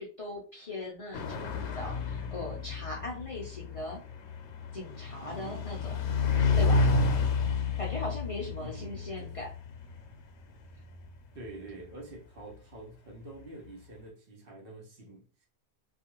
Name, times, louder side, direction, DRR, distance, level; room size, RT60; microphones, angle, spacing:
voice 1, 0.0-4.0 4.7-5.9 6.6-6.9 7.7-9.5, left 2 dB, 40° left, 0.5 m, -39 dB
sound 1, 1.1-12.1, left 4 dB, 85° left, 0.9 m, -31 dB
voice 2, 5.2-5.6 8.6-9.3 11.3-15.5, right 2 dB, 60° right, 0.9 m, -47 dB
2.4 x 2.3 x 2.9 m
omnidirectional pair, 1.1 m